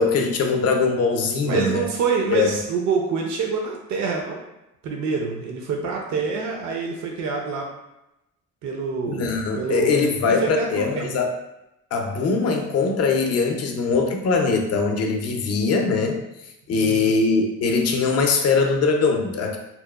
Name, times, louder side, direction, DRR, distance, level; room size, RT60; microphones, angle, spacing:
voice 1, 0.0-1.8 2.3-2.5 9.1-11.3 11.9-16.2 16.7-19.6, left 4 dB, 55° left, 3 dB, 0.5 m, -21 dB
voice 2, 1.4-4.4 4.8-7.7 8.6-9.3 9.6-9.9 10.3-11.1 16.7-17.2, right 4 dB, 70° right, 0 dB, 0.5 m, -26 dB
2.8 x 2.1 x 2.2 m, 0.89 s
cardioid pair, 90°, 30 cm